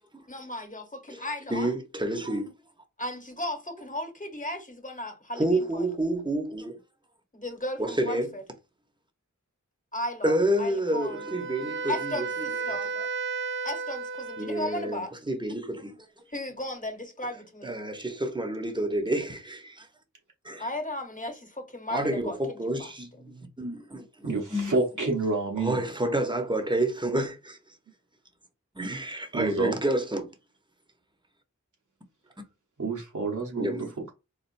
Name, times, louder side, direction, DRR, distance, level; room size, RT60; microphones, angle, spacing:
voice 1, 0.3-1.7 3.0-5.9 7.3-8.4 9.9-11.3 11.9-12.9 13.6-15.1 16.3-17.7 20.6-22.9, left 1 dB, 25° left, 1.2 m, -35 dB
voice 2, 1.5-2.5 5.3-6.8 7.8-8.3 10.2-12.3 12.7-13.1 14.4-16.0 17.6-19.9 20.4-20.7 21.9-24.7 25.6-27.6 28.7-30.3 33.6-33.9, right 1 dB, 15° right, 0.9 m, -29 dB
Wind instrument woodwind instrument, 11.0-15.0, right 5 dB, 40° right, 0.4 m, -34 dB
voice 3, 24.2-25.8 29.3-29.8 32.8-34.1, right 3 dB, 75° right, 1.1 m, -29 dB
4.4 x 2.4 x 2.6 m
wide cardioid pair, 50°, 31 cm